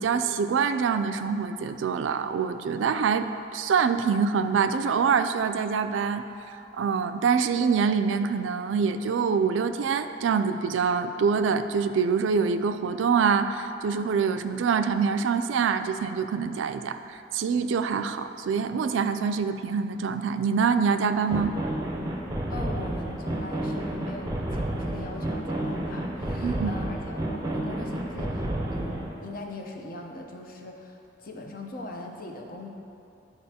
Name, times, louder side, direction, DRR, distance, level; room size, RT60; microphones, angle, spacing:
voice 1, 0.0-6.2 6.8-21.5 26.4-26.8, right 6 dB, 85° right, 9 dB, 0.3 m, -25 dB
sound 1, 21.3-29.1, right 1 dB, 20° right, 0.6 m, -31 dB
voice 2, 22.5-32.7, left 2 dB, 50° left, 1 dB, 0.7 m, -40 dB
11.0 x 4.5 x 2.8 m, 2.7 s
head